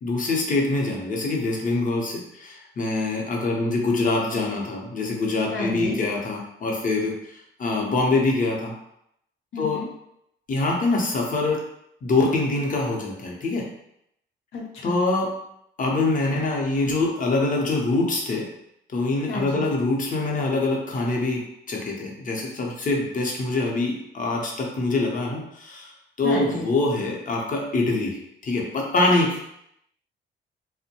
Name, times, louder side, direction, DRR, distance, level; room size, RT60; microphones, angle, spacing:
voice 1, 0.0-8.7 9.6-9.8 10.5-11.7 12.0-13.7 14.8-15.4 15.8-18.5 18.9-25.9 26.2-29.4, left 2 dB, 40° left, -1 dB, 0.7 m, -24 dB
voice 2, 5.5-6.0 9.5-9.9 14.5-14.9 19.3-19.7 26.2-26.6, left 2 dB, 80° left, -2 dB, 0.8 m, -31 dB
2.6 x 2.1 x 2.8 m, 0.77 s
cardioid pair, 90°, 20 cm